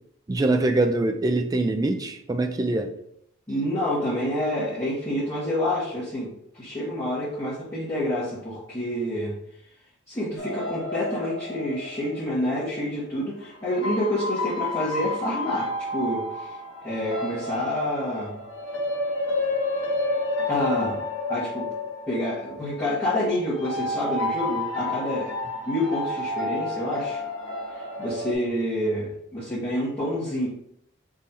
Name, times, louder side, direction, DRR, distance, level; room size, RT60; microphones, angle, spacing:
voice 1, 0.3-2.9, right 2 dB, 20° right, 0.3 m, -23 dB
voice 2, 3.5-9.3 10.1-18.3 20.5-21.0 21.3-21.7 22.1-25.4 25.6-27.2 27.7-30.5, left 1 dB, 15° left, 1.4 m, -28 dB
sound 1, 10.4-12.9 13.7-28.3, left 2 dB, 75° left, 1.0 m, -30 dB
3.7 x 3.2 x 4.1 m
head